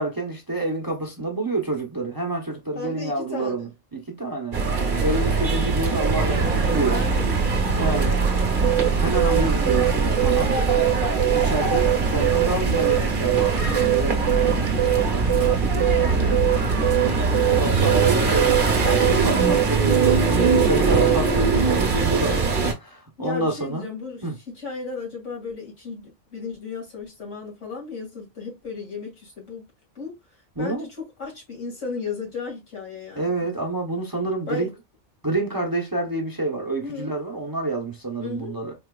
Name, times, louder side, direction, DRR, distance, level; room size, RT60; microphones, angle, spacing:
voice 1, 0.0-4.6 5.0-7.0 7.8-8.1 8.7-10.6 11.3-14.6 14.9-16.7 17.5-20.3 20.5-23.8 24.2-24.3 30.6-30.9 33.2-34.7 35.2-38.7, right 2 dB, 20° right, 0.6 m, -28 dB
voice 2, 2.8-3.6 6.7-7.3 7.6-8.2 9.9-10.2 23.2-29.6 30.0-30.2 30.6-33.5 34.5-34.7 36.8-37.1 38.2-38.5, left 4 dB, 85° left, 2.5 m, -34 dB
sound 1, 4.5-22.7, right 4 dB, 50° right, 0.9 m, -22 dB
sound 2, 8.6-21.2, right 16 dB, 75° right, 0.9 m, -22 dB
4.3 x 2.9 x 2.3 m
omnidirectional pair, 1.2 m